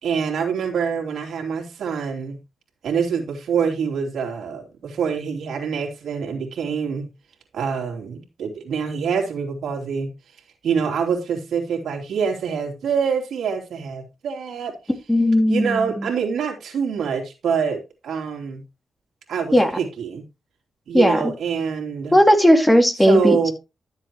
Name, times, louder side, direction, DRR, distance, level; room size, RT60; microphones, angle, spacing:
voice 1, 0.0-2.4 2.8-7.1 7.5-10.1 10.6-14.8 15.5-18.6 19.3-20.2 20.9-22.1 23.0-23.5, right 6 dB, 80° right, 3.0 m, -25 dB
voice 2, 15.1-16.1 19.5-19.7 20.9-21.3 22.1-23.5, equal, 10° left, 2.2 m, -16 dB
12.5 x 7.6 x 3.1 m
cardioid pair, 75°, 0 cm